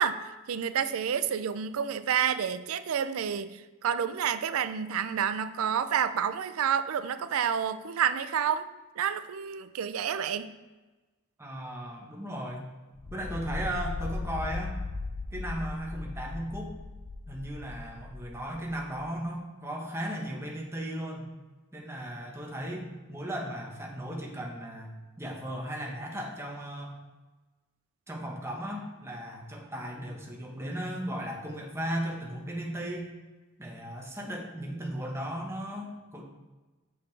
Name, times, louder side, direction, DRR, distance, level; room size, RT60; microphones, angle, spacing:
voice 1, 0.0-8.7 9.0-10.5, right 8 dB, 80° right, 13 dB, 0.4 m, -29 dB
voice 2, 11.4-12.7 13.1-14.8 15.3-16.8 17.3-21.3 21.7-27.0 28.1-33.1 33.6-36.2, right 1 dB, 15° right, -1 dB, 1.1 m, -36 dB
sound 1, 13.0-19.0, left 3 dB, 25° left, 0.3 m, -38 dB
6.6 x 6.0 x 3.3 m, 1.2 s
head